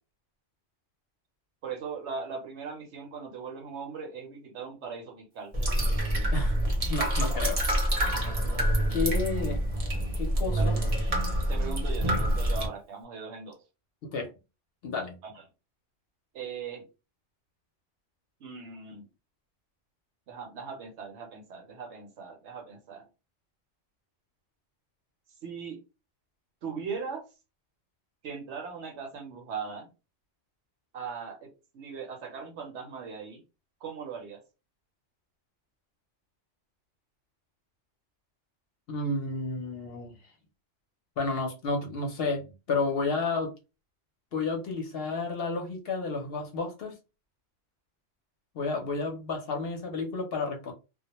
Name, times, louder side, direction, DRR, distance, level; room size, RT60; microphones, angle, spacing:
voice 1, 1.6-5.5 10.6-10.8 11.5-13.6 15.2-15.4 16.3-16.8 18.4-19.1 20.3-23.1 25.4-25.8 26.6-27.3 28.2-29.9 30.9-33.4 33.8-34.4, right 5 dB, 70° right, 0.9 m, -39 dB
sound 1, 5.5-12.7, equal, 35° right, 0.7 m, -27 dB
voice 2, 6.9-7.6 8.9-9.6 10.2-10.8 14.1-14.3 14.8-15.2 38.9-40.1 41.2-43.5 44.3-46.9 48.5-50.7, left 3 dB, 60° left, 0.7 m, -31 dB
2.2 x 2.1 x 2.9 m
omnidirectional pair, 1.3 m